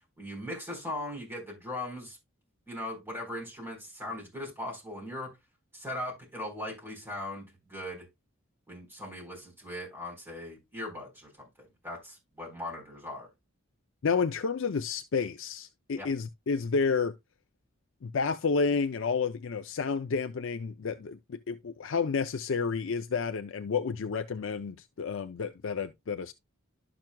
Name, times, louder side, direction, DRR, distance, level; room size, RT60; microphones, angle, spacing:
voice 1, 0.2-2.2 2.7-5.3 5.7-8.1 8.7-13.3 16.0-16.1, left 1 dB, 10° right, 4.2 m, -39 dB
voice 2, 14.0-17.1 18.0-26.3, left 5 dB, 60° left, 0.4 m, -30 dB
12.0 x 5.9 x 2.2 m
head